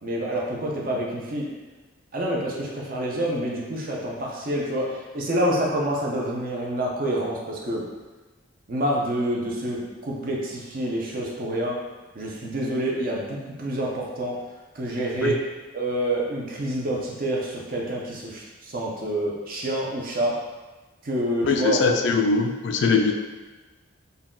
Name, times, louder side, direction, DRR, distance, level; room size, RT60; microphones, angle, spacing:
voice 1, 0.0-1.5 2.1-7.8 8.7-11.8 12.1-14.4 14.7-15.4 15.7-20.4 21.0-21.8, right 1 dB, 45° right, -2 dB, 0.7 m, -27 dB
voice 2, 21.4-23.1, left 4 dB, 60° left, 3 dB, 0.3 m, -21 dB
4.0 x 2.3 x 3.7 m, 1.2 s
head